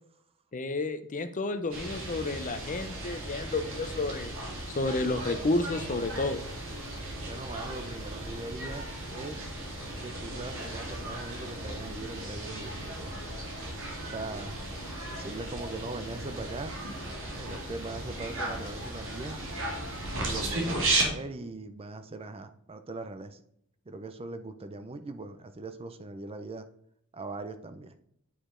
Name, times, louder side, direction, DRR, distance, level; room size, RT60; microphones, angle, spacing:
voice 1, 0.5-4.3 4.8-6.4, left 2 dB, 35° left, 10 dB, 0.6 m, -31 dB
sound 1, 1.7-21.1, right 2 dB, 60° right, 1.8 m, -36 dB
voice 2, 7.2-8.9 9.1-9.5 10.0-13.1 14.0-14.6 15.1-16.8 17.4-19.4 20.2-23.4 23.9-26.7 27.1-27.9, right 2 dB, 25° right, 10 dB, 0.5 m, -40 dB
8.5 x 5.0 x 3.7 m, 0.70 s
head